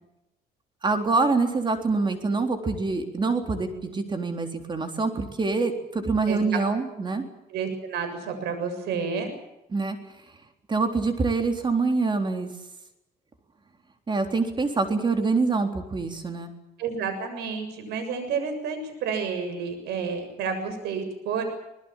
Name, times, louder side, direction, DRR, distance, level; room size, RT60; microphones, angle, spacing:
voice 1, 0.8-7.3 9.7-10.0 10.7-12.5 14.1-16.6, right 3 dB, 25° right, 6 dB, 3.7 m, -25 dB
voice 2, 7.5-9.3 16.8-21.5, right 5 dB, 80° right, 8 dB, 7.2 m, -30 dB
24.5 x 20.5 x 7.4 m, 0.92 s
cardioid pair, 110°, 17 cm